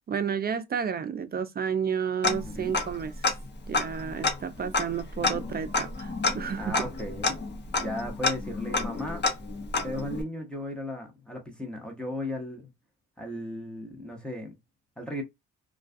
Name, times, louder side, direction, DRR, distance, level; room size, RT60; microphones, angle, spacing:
voice 1, 0.1-3.3 3.7-6.9, right 7 dB, 30° right, 0.4 m, -31 dB
Tick-tock, 2.2-3.0 3.2-3.3 3.7-10.2, left 3 dB, 35° left, 0.8 m, -29 dB
voice 2, 2.4-2.8 6.6-7.4 7.8-9.2 9.8-12.7 13.2-14.5 15.0-15.2, left 1 dB, 5° left, 0.8 m, -36 dB
2.3 x 2.2 x 2.5 m
cardioid pair, 90°, 30 cm